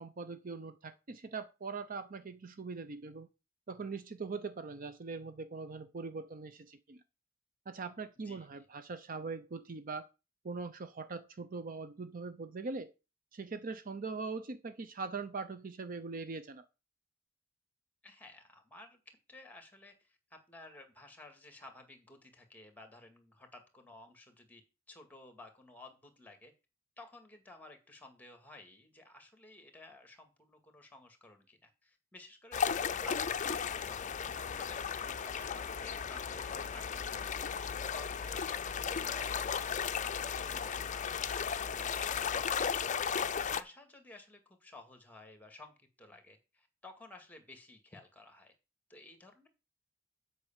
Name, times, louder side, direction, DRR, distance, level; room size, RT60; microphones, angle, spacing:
voice 1, 0.0-3.3 3.7-7.0 7.7-10.1 10.4-12.9 13.3-16.6, right 4 dB, 45° right, 0.6 m, -41 dB
voice 2, 8.2-8.7 18.0-24.6 24.9-26.5 27.0-34.2 34.6-34.9 35.2-37.5 37.9-42.6 43.2-48.5 48.9-49.5, left 2 dB, 10° left, 1.9 m, -55 dB
sound 1, 32.5-43.6, left 7 dB, 40° left, 0.5 m, -35 dB
8.1 x 5.4 x 7.2 m
head